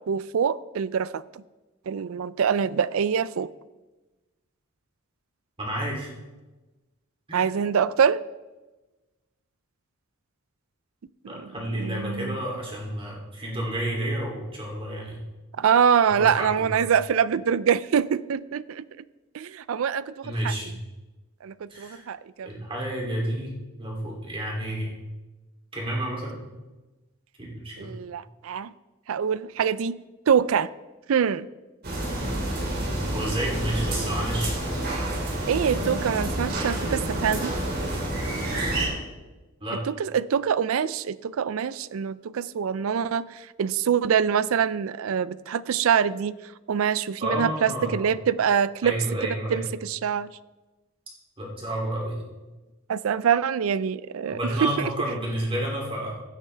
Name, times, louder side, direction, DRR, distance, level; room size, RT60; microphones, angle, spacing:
voice 1, 0.0-1.4 1.9-3.5 7.3-8.2 11.2-12.4 15.6-18.8 19.3-20.5 21.4-22.7 27.8-28.7 29.1-30.0 30.3-30.7 31.1-31.5 35.5-37.5 39.8-46.4 46.7-49.0 49.2-50.3 52.9-54.9, right 7 dB, 70° right, 18 dB, 0.4 m, -25 dB
voice 2, 5.6-6.1 7.3-7.5 11.3-15.2 16.2-16.8 20.2-20.8 21.7-22.1 22.4-23.5 23.8-24.9 25.7-26.4 27.4-27.9 33.1-34.6 39.6-39.8 47.2-48.0 48.8-49.6 51.4-52.2 54.3-56.2, right 1 dB, 25° right, -2 dB, 2.8 m, -30 dB
sound 1, 31.8-38.9, right 1 dB, 45° right, 3.1 m, -28 dB
16.0 x 8.8 x 3.3 m, 1.2 s
head